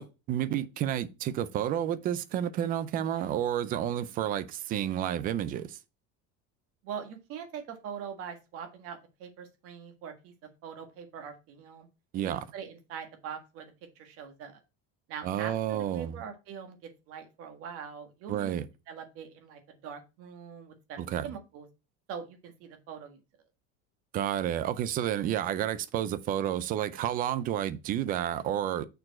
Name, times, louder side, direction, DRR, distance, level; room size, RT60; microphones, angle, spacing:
voice 1, 0.0-5.8 12.1-12.5 15.2-16.2 18.3-18.7 21.0-21.3 24.1-28.9, right 11 dB, 25° right, 0.3 m, -30 dB
voice 2, 6.8-10.3 10.6-11.9 12.2-14.6 15.1-18.5 18.9-21.7 22.1-23.2, right 7 dB, 45° right, 1.6 m, -43 dB
6.4 x 4.5 x 4.2 m
cardioid pair, 180°, 33 cm